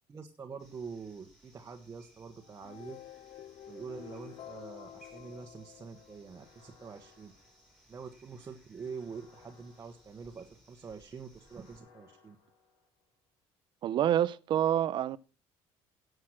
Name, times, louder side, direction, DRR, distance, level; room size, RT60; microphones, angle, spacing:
voice 1, 0.1-3.0 3.7-7.3 7.9-12.4, right 5 dB, 25° right, 1.3 m, -45 dB
sound 1, 0.6-11.8, right 1 dB, ahead, 3.4 m, -64 dB
sound 2, 2.4-6.7, left 12 dB, 55° left, 0.6 m, -50 dB
sound 3, 3.7-5.6 6.3-8.1 8.8-10.7 11.3-13.2, left 5 dB, 75° left, 6.0 m, -64 dB
voice 2, 13.8-15.2, right 11 dB, 50° right, 0.7 m, -27 dB
11.5 x 8.0 x 5.9 m
cardioid pair, 135°, 10 cm